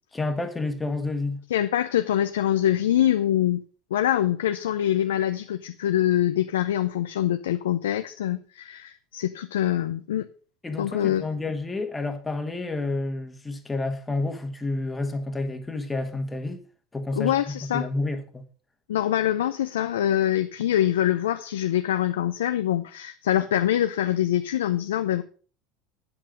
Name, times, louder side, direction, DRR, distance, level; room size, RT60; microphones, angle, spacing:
voice 1, 0.1-1.4 10.6-16.6 16.9-18.4, left 2 dB, 15° left, 1.6 m, -30 dB
voice 2, 1.5-3.6 3.9-10.3 10.8-11.3 17.2-17.9 18.9-25.2, left 11 dB, 85° left, 0.5 m, -24 dB
8.7 x 7.7 x 5.1 m
hypercardioid pair, 80°, 0 cm